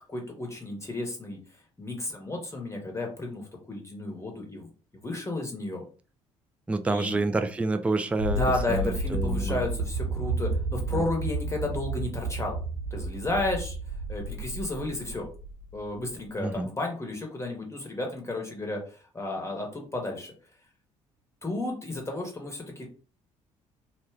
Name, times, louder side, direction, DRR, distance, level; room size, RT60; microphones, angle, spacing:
voice 1, 0.1-1.4 1.8-5.8 6.9-7.2 8.3-12.6 12.9-13.8 14.1-15.3 15.7-20.3 21.4-22.9, left 2 dB, 15° left, 1 dB, 1.0 m, -32 dB
voice 2, 6.7-8.4 8.7-9.6 16.4-16.7, right 3 dB, 10° right, 8 dB, 0.3 m, -28 dB
sound 1, 8.2-16.3, right 2 dB, 75° right, 0.6 m, -32 dB
2.6 x 2.2 x 3.4 m, 0.39 s
figure-of-eight pair, 50°, 16 cm